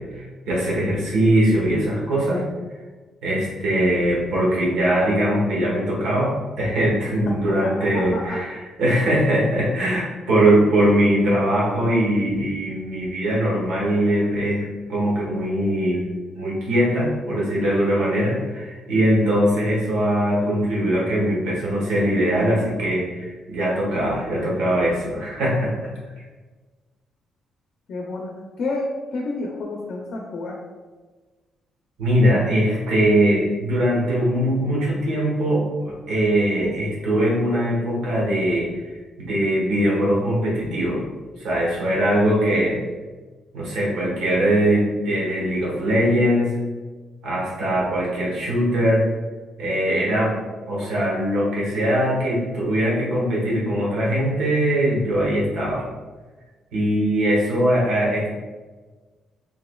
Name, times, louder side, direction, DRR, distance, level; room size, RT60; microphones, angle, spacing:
voice 1, 0.0-2.4 3.2-6.3 6.6-16.1 16.3-25.7 32.0-38.9 39.2-41.0 41.4-42.8 43.5-46.5 47.2-49.0 49.6-50.4 50.7-55.8 56.7-58.3, right 1 dB, 80° right, -5 dB, 1.2 m, -21 dB
voice 2, 7.3-8.4 27.9-28.3 28.6-30.6, left 2 dB, 65° left, -1 dB, 0.5 m, -30 dB
3.5 x 2.9 x 2.3 m, 1.3 s
cardioid pair, 90°, 0 cm